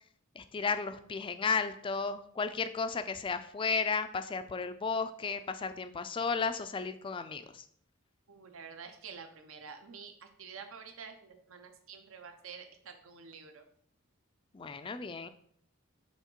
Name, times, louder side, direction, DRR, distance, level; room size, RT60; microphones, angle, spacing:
voice 1, 0.4-7.7 14.5-15.3, left 5 dB, 25° left, 11 dB, 0.3 m, -34 dB
voice 2, 8.3-13.6, right 6 dB, 75° right, 6 dB, 0.8 m, -48 dB
5.7 x 3.9 x 4.5 m, 0.63 s
head